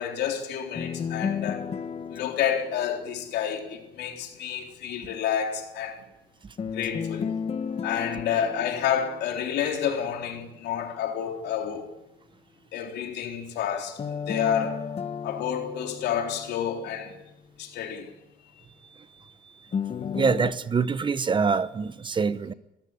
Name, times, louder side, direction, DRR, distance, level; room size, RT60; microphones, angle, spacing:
voice 1, 0.0-1.7 2.1-6.0 6.7-7.3 7.8-11.9 12.7-14.9 15.2-17.1 17.6-18.1, left 9 dB, 80° left, 3.7 m, -29 dB
sound 1, 0.7-3.8 6.6-9.8 14.0-17.1 19.7-20.5, left 6 dB, 35° left, 1.3 m, -33 dB
voice 2, 20.1-22.5, right 5 dB, 30° right, 0.9 m, -25 dB
22.0 x 14.5 x 9.8 m
cardioid pair, 110°, 17 cm